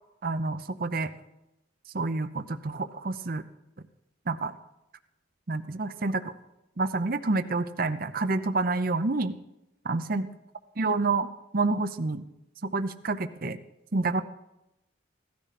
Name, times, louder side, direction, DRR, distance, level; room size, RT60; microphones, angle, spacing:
voice 1, 0.2-1.1 1.9-3.4 4.3-4.5 5.5-6.3 6.8-9.3 9.8-10.3 10.8-11.3 11.5-12.2 12.6-13.6 13.9-14.2, right 3 dB, 50° right, 11 dB, 0.7 m, -28 dB
17.0 x 13.5 x 4.2 m, 0.89 s
head